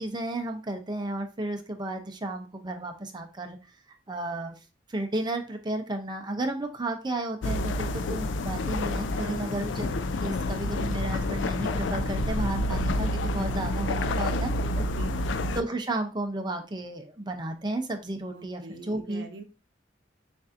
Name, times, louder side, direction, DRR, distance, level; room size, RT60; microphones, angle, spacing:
voice 1, 0.0-3.6 4.1-4.5 4.9-9.9 10.2-14.5 15.5-19.3, right 2 dB, 25° right, 5 dB, 0.6 m, -33 dB
sound 1, 7.4-15.6, left 1 dB, 85° left, 0.4 m, -28 dB
voice 2, 9.2-9.6 14.2-14.5 14.7-15.2 18.3-19.4, right 3 dB, 75° right, 5 dB, 0.7 m, -43 dB
6.6 x 2.6 x 2.5 m, 0.33 s
head